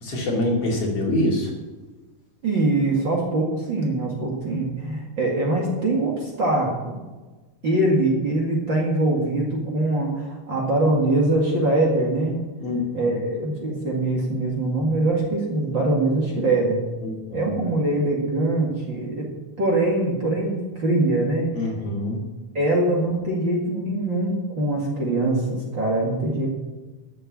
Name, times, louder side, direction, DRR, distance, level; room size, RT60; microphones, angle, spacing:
voice 1, 0.0-1.5 12.6-13.2 17.0-17.6 21.5-22.3, left 1 dB, 50° left, -2 dB, 3.4 m, -25 dB
voice 2, 2.4-7.0 7.6-12.4 12.9-16.8 17.3-19.3 19.6-21.5 22.5-26.5, right 2 dB, 40° right, -2 dB, 2.4 m, -23 dB
13.0 x 6.9 x 8.8 m, 1.2 s
omnidirectional pair, 3.7 m